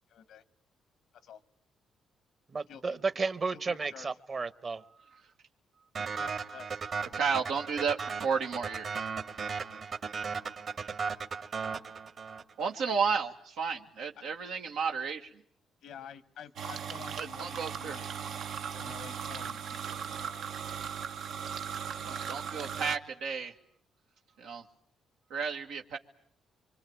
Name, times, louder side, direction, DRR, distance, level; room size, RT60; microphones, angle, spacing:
voice 1, 0.1-0.4 1.2-1.4 2.7-3.0 3.7-4.1 6.2-6.8 15.8-18.1 18.7-20.5 22.0-22.3 22.5-22.7, left 8 dB, 85° left, 1.1 m, -49 dB
voice 2, 2.5-4.8, right 4 dB, 35° right, 1.2 m, -33 dB
sound 1, 5.9-12.6, right 5 dB, 55° right, 2.0 m, -36 dB
voice 3, 7.1-9.0 12.6-15.3 17.2-18.0 22.0-23.5 24.4-24.6 25.3-26.0, right 6 dB, 90° right, 1.8 m, -32 dB
sound 2, 16.6-23.0, right 7 dB, 70° right, 1.1 m, -38 dB
25.0 x 25.0 x 8.8 m
cardioid pair, 100°, 0 cm